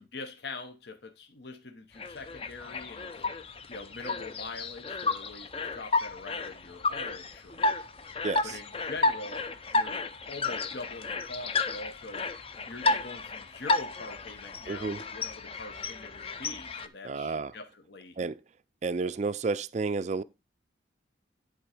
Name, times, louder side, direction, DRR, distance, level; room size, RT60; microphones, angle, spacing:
voice 1, 0.0-3.3 3.7-7.7 8.4-12.3 12.6-18.2, left 3 dB, 60° left, 0.9 m, -43 dB
sound 1, 2.0-16.9, left 3 dB, 30° left, 0.5 m, -32 dB
voice 2, 8.2-8.6 14.7-15.0 17.0-17.5 18.2-18.4 18.8-20.2, right 4 dB, 35° right, 0.3 m, -31 dB
11.0 x 3.8 x 4.9 m
head